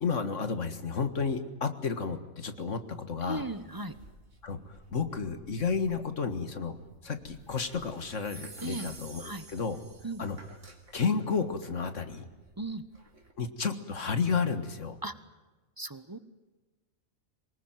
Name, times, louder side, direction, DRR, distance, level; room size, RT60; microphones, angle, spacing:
voice 1, 0.0-3.5 4.4-6.7 7.0-9.8 10.2-10.4 10.9-12.3 13.4-15.0, left 5 dB, 65° left, 9 dB, 2.0 m, -32 dB
voice 2, 3.2-3.9 8.6-8.9 9.2-9.4 10.0-10.2 12.6-12.8 15.0-15.2 15.8-16.2, right 2 dB, 15° right, 13 dB, 1.0 m, -37 dB
sound 1, 3.3-13.3, right 1 dB, 60° right, 3.6 m, -56 dB
sound 2, 8.1-10.6, right 3 dB, 75° right, 4.2 m, -49 dB
24.0 x 20.0 x 9.1 m, 1.2 s
omnidirectional pair, 1.4 m